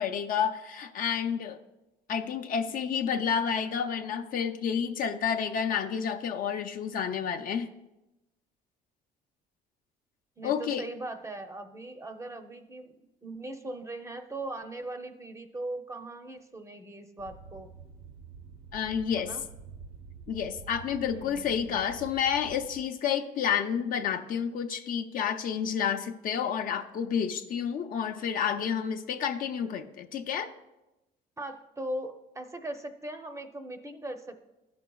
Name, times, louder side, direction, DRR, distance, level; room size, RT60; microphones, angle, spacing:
voice 1, 0.0-1.6 2.1-7.7 10.4-10.9 18.7-19.3 20.3-30.5, left 7 dB, 55° left, 6 dB, 0.6 m, -30 dB
voice 2, 10.4-17.7 19.2-19.4 21.1-21.8 31.4-34.5, right 1 dB, 15° right, 6 dB, 0.6 m, -39 dB
sound 1, 17.2-22.8, right 5 dB, 85° right, 0.8 m, -47 dB
14.0 x 6.0 x 2.3 m, 0.97 s
cardioid pair, 110°, 17 cm